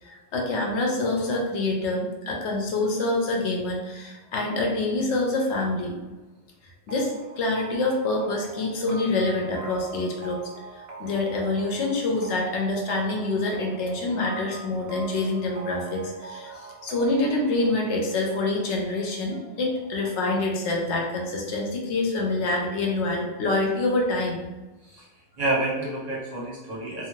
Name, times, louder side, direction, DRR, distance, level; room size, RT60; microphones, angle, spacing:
voice 1, 0.0-5.9 6.9-10.4 10.7-24.4, left 2 dB, 80° left, 0 dB, 0.9 m, -26 dB
sound 1, 6.9-20.4, right 4 dB, 70° right, 0.8 m, -44 dB
voice 2, 25.4-27.1, right 2 dB, 40° right, -8 dB, 0.9 m, -28 dB
2.5 x 2.3 x 3.0 m, 1.2 s
omnidirectional pair, 1.2 m